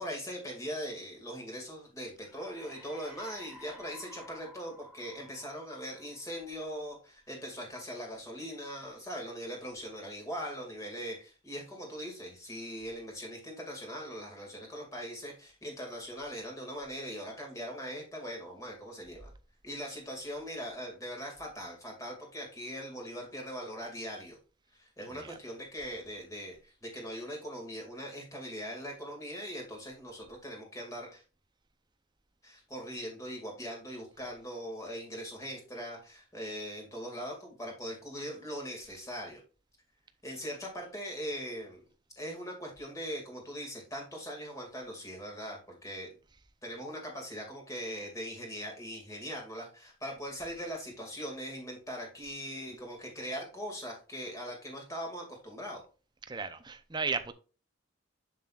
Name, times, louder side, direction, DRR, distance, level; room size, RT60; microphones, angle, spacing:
voice 1, 0.0-19.3 19.6-24.4 24.8-31.2 32.4-39.4 40.2-41.8 42.2-46.1 46.6-55.8, equal, 15° left, 2.3 m, -41 dB
sound 1, 2.2-6.8, equal, 5° right, 1.3 m, -54 dB
voice 2, 56.3-57.3, right 4 dB, 20° right, 0.6 m, -35 dB
7.4 x 7.3 x 2.4 m
head